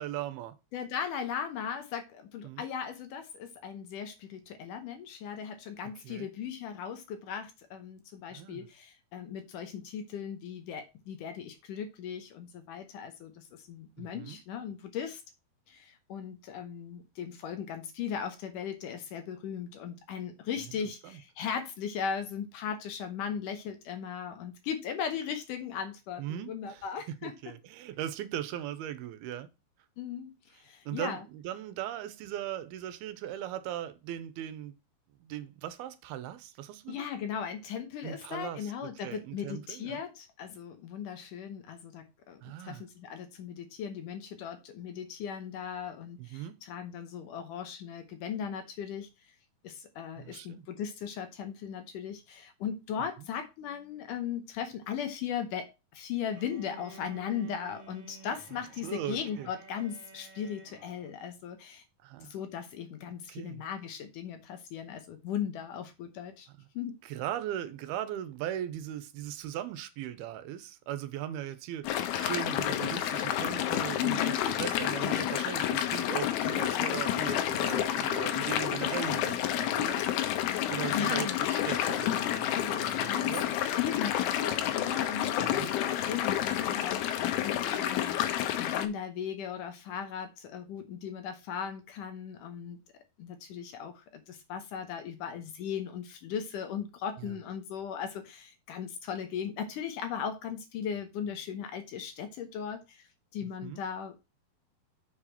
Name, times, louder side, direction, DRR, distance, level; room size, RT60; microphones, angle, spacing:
voice 1, 0.0-0.6 2.4-2.6 5.8-6.3 8.3-8.7 14.0-14.4 20.7-20.8 21.0-21.2 26.2-26.9 27.2-29.5 30.9-34.7 35.2-37.1 38.0-40.0 42.4-42.8 46.2-46.6 50.2-50.7 53.2-53.3 58.8-59.5 62.0-62.3 63.3-63.7 66.6-66.7 67.0-71.9 72.2-80.0 80.7-83.5 85.4-85.8 97.2-97.4 103.4-103.8, right 11 dB, 90° right, 2.7 m, -39 dB
voice 2, 0.7-15.2 15.7-27.3 30.0-31.2 36.9-49.1 49.6-61.8 62.2-66.5 66.8-66.9 74.0-74.4 80.6-81.4 82.5-83.3 83.7-103.0 103.3-104.2, left 8 dB, 70° left, 2.2 m, -38 dB
Bowed string instrument, 56.3-61.2, right 2 dB, 50° right, 2.5 m, -52 dB
sound 1, 71.8-88.9, left 11 dB, 90° left, 2.7 m, -30 dB
7.1 x 4.9 x 5.8 m
omnidirectional pair, 4.4 m